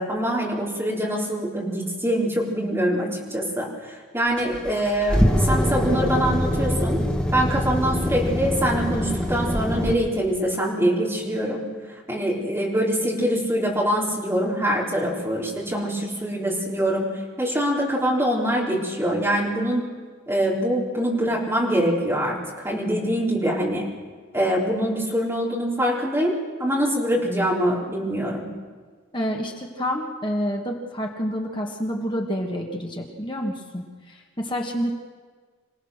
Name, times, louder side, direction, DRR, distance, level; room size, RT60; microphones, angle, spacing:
voice 1, 0.0-7.0 7.3-11.6 12.1-17.1 17.4-19.9 20.3-22.4 22.6-23.9 24.3-26.3 26.6-28.5, equal, 10° right, -4 dB, 4.0 m, -24 dB
sound 1, 4.4-9.9, equal, 5° left, 1.4 m, -23 dB
voice 2, 29.1-34.9, equal, 25° left, 1 dB, 1.7 m, -28 dB
27.0 x 17.5 x 6.6 m, 1.5 s
head